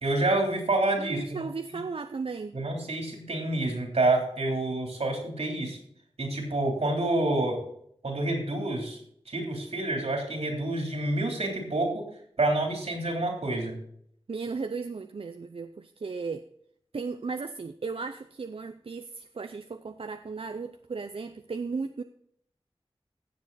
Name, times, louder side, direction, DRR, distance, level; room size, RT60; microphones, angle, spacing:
voice 1, 0.0-1.8 2.5-5.8 6.2-7.6 8.0-9.0 9.3-12.1 12.4-13.8, right 2 dB, 85° right, 1 dB, 3.5 m, -28 dB
voice 2, 1.0-2.6 14.3-16.4 16.9-22.0, right 4 dB, 65° right, 8 dB, 0.6 m, -35 dB
16.0 x 7.6 x 4.1 m, 0.65 s
wide cardioid pair, 70°, 10 cm